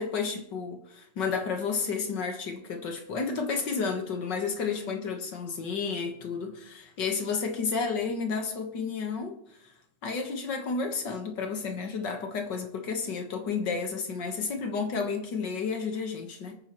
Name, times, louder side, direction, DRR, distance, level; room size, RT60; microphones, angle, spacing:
voice 1, 0.0-9.7 10.0-16.5, left 5 dB, 60° left, 2.0 m, -31 dB
24.5 x 9.4 x 3.1 m
omnidirectional pair, 2.2 m